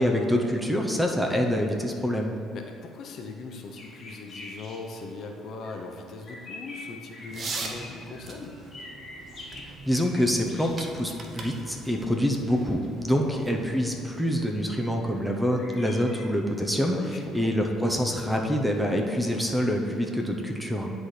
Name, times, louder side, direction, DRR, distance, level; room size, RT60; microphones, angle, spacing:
voice 1, 0.0-2.3 9.9-20.9, equal, 5° right, 2 dB, 0.7 m, -26 dB
voice 2, 2.5-8.5 13.1-13.4 16.9-17.5, left 3 dB, 60° left, 3 dB, 0.7 m, -40 dB
sound 1, 3.6-16.3, left 2 dB, 35° left, 1.3 m, -47 dB
sound 2, 7.3-13.9, right 3 dB, 45° right, 0.8 m, -41 dB
10.0 x 4.2 x 3.3 m, 2.6 s
cardioid pair, 95°, 0 cm